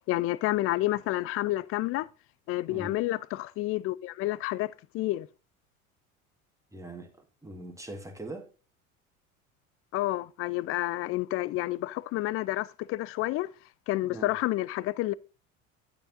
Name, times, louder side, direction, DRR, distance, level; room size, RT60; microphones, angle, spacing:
voice 1, 0.1-2.1 2.5-5.3 9.9-13.5 13.9-15.1, left 17 dB, 35° left, 0.4 m, -29 dB
voice 2, 6.7-8.5 14.0-14.3, right 2 dB, 5° right, 1.6 m, -42 dB
8.8 x 8.6 x 2.6 m
hypercardioid pair, 75°, 41 cm